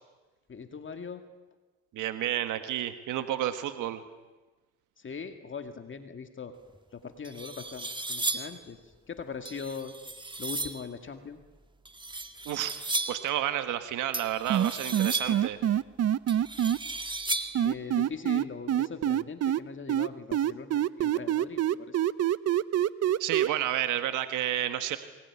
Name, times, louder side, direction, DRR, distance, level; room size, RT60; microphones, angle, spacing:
voice 1, 0.5-1.2 5.0-6.5 6.9-9.9 10.4-11.4 17.6-22.0 23.1-23.2, left 5 dB, 40° left, 7 dB, 2.1 m, -41 dB
voice 2, 1.9-4.0 12.4-12.7 13.1-15.6 23.2-25.0, right 12 dB, 85° right, 9 dB, 1.5 m, -31 dB
sound 1, 6.7-6.8 7.2-8.6 9.5-10.9 11.9-13.3 14.1-15.5 16.3-17.7, right 2 dB, 15° right, 2.0 m, -35 dB
sound 2, 14.5-16.8 17.5-19.6 19.9-23.5, right 11 dB, 55° right, 0.8 m, -25 dB
23.5 x 20.0 x 9.8 m, 1.2 s
cardioid pair, 90°, 30 cm